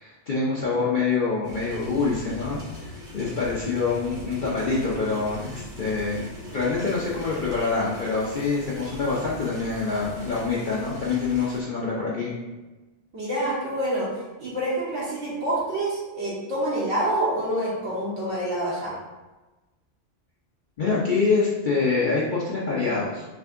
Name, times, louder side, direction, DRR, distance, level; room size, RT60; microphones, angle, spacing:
voice 1, 0.0-12.3 20.8-23.2, left 4 dB, 50° left, -7 dB, 0.7 m, -26 dB
sound 1, 1.4-11.6, left 1 dB, 60° right, 1.4 m, -41 dB
voice 2, 13.1-19.0, right 1 dB, 85° right, -7 dB, 1.8 m, -27 dB
5.9 x 2.6 x 2.5 m, 1.1 s
omnidirectional pair, 1.2 m